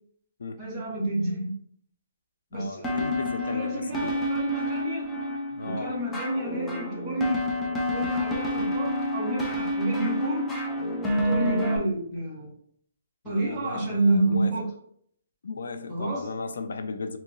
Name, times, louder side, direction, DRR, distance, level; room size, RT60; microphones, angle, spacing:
voice 1, 0.6-1.5 2.5-3.1 3.5-5.1 5.7-7.4 7.9-10.5 11.2-12.5 13.2-14.7 15.9-16.3, right 1 dB, 10° right, 0.9 m, -29 dB
voice 2, 2.5-4.2 5.5-6.0 13.2-14.5 15.4-17.2, left 4 dB, 90° left, 0.4 m, -36 dB
sound 1, 2.8-11.8, equal, 5° left, 0.4 m, -29 dB
3.7 x 2.8 x 2.6 m
hypercardioid pair, 175°, 0 cm